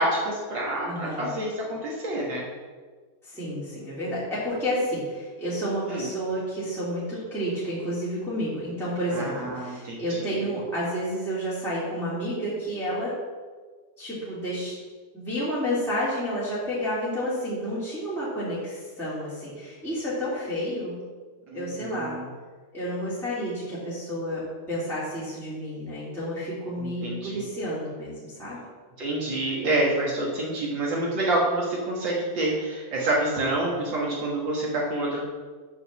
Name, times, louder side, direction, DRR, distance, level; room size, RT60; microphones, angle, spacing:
voice 1, 0.0-2.5 5.9-6.1 9.1-10.5 21.5-22.3 26.8-27.4 29.0-35.3, right 1 dB, 75° right, -4 dB, 1.0 m, -28 dB
voice 2, 0.8-1.3 3.2-13.1 14.0-14.7 15.1-21.0 21.5-22.1 22.7-24.4 24.7-28.6, equal, ahead, -11 dB, 2.3 m, -30 dB
11.0 x 5.0 x 7.4 m, 1.5 s
omnidirectional pair, 4.6 m